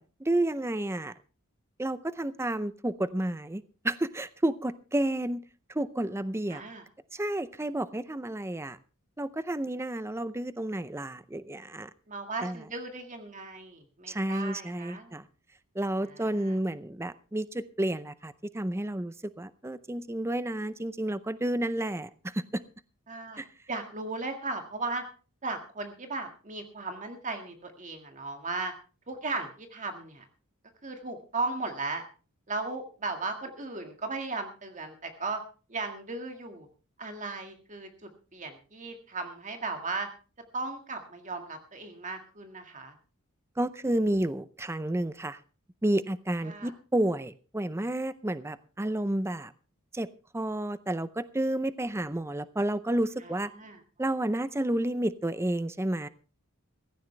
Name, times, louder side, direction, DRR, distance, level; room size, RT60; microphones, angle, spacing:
voice 1, 0.2-1.1 1.8-5.4 5.7-6.6 7.1-8.8 9.2-11.9 12.4-12.6 14.1-15.2 15.8-22.6 23.4-23.5 43.6-45.4 45.8-49.5 49.9-50.1 50.3-53.5 54.0-56.1, right 1 dB, 10° right, 15 dB, 0.6 m, -31 dB
voice 2, 6.5-6.8 12.1-15.1 16.1-16.6 23.1-23.4 23.7-25.0 25.4-28.7 29.1-30.3 30.8-32.0 32.5-35.4 35.7-36.7 37.0-40.1 40.5-42.9 46.4-46.7 53.2-53.8, right 3 dB, 35° right, 5 dB, 1.9 m, -36 dB
16.0 x 15.5 x 3.3 m, 0.36 s
head